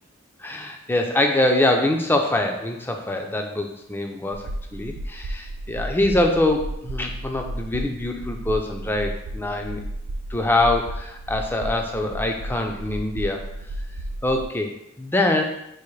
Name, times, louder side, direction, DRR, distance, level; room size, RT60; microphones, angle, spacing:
voice 1, 0.4-9.8 10.3-13.4 14.2-15.4, left 1 dB, 10° left, 3 dB, 0.4 m, -24 dB
sound 1, 4.3-14.5, right 1 dB, 75° right, 0.3 m, -33 dB
4.8 x 2.5 x 3.1 m, 0.81 s
head